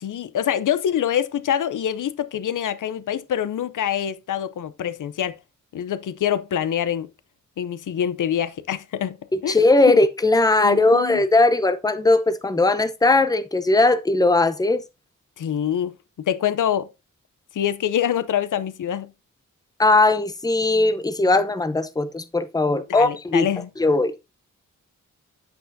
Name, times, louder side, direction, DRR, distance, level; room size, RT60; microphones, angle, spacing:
voice 1, 0.0-5.3 5.7-7.1 7.6-9.2 9.4-9.6 9.9-10.0 10.6-11.2 15.4-15.9 16.3-16.9 17.5-19.1 22.7-23.7, left 9 dB, 75° left, 0.6 m, -25 dB
voice 2, 9.5-14.8 19.8-23.5 23.8-24.2, left 2 dB, 10° left, 0.7 m, -19 dB
8.8 x 8.0 x 2.6 m
wide cardioid pair, 90°, 31 cm